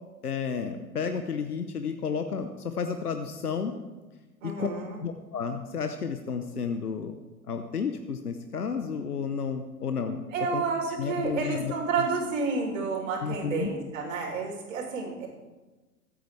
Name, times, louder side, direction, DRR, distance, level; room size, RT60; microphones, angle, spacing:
voice 1, 0.2-3.7 4.4-4.7 5.0-7.1 7.5-10.2 10.5-10.6 11.0-11.7 13.2-13.7, left 6 dB, 80° left, 7 dB, 1.1 m, -31 dB
voice 2, 4.4-5.0 10.3-15.3, right 4 dB, 55° right, 0 dB, 4.0 m, -30 dB
25.0 x 9.2 x 3.4 m, 1.2 s
figure-of-eight pair, 100°, 45 cm